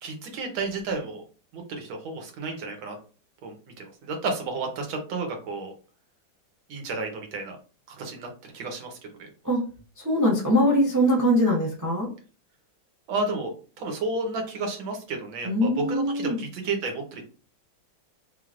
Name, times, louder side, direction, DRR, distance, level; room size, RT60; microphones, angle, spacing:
voice 1, 0.0-1.2 1.5-3.0 3.4-3.5 4.0-5.7 6.7-7.6 7.9-8.3 8.5-9.3 13.1-17.2, right 3 dB, 90° right, 3 dB, 1.8 m, -32 dB
voice 2, 10.0-12.1 15.4-16.4, equal, 25° right, -4 dB, 0.4 m, -22 dB
3.8 x 3.4 x 2.5 m, 0.38 s
omnidirectional pair, 2.1 m